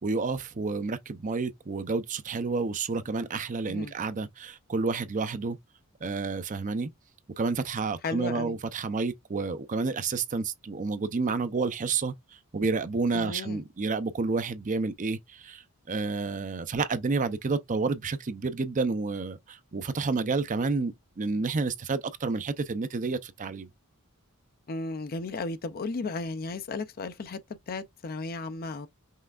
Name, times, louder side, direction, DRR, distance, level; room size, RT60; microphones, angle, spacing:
voice 1, 0.0-5.6 6.0-6.9 7.4-12.2 12.5-23.7, right 4 dB, 35° right, 0.5 m, -30 dB
voice 2, 8.0-8.5 13.1-13.6 24.7-27.4 27.7-28.9, left 3 dB, 40° left, 0.5 m, -34 dB
5.6 x 3.2 x 2.4 m
head